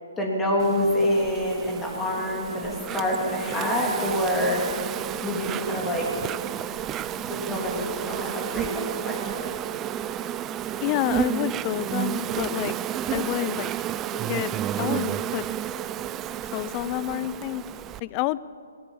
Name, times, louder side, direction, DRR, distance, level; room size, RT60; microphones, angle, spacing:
voice 1, 0.2-4.6 5.2-6.2 7.3-9.5, left 1 dB, 10° left, -1 dB, 3.1 m, -26 dB
Insect, 0.6-18.0, right 11 dB, 20° right, 0.5 m, -31 dB
voice 2, 10.8-12.8 13.1-13.7 14.3-15.5 16.5-17.6 18.0-18.4, left 16 dB, 30° left, 19 dB, 0.5 m, -28 dB
19.5 x 19.0 x 7.1 m, 2.4 s
hypercardioid pair, 145°, 0 cm